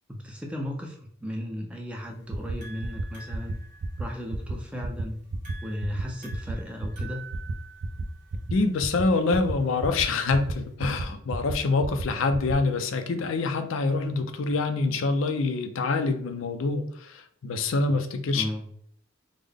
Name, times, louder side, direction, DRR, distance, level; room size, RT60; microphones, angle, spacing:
voice 1, 0.1-3.6 4.0-5.2 5.6-7.2 18.3-18.7, equal, 5° right, 1 dB, 0.5 m, -35 dB
sound 1, 2.0-10.7, right 4 dB, 40° right, 1.3 m, -50 dB
sound 2, 2.3-2.5 2.8-3.0 3.3-3.5 3.8-4.0 4.3-4.5 4.8-5.0 5.3-5.5 5.8-6.0 6.3-6.5 6.8-7.0 7.3-7.5 7.8-8.0 8.3-8.5 8.8-9.0 9.3-9.5 9.8-10.0 10.3-10.5 10.8-11.0 11.3-11.5 11.8-12.0 12.3-12.5, right 3 dB, 75° right, 0.4 m, -31 dB
voice 2, 8.5-18.4, left 3 dB, 70° left, 7 dB, 0.4 m, -26 dB
3.7 x 2.1 x 3.4 m, 0.65 s
head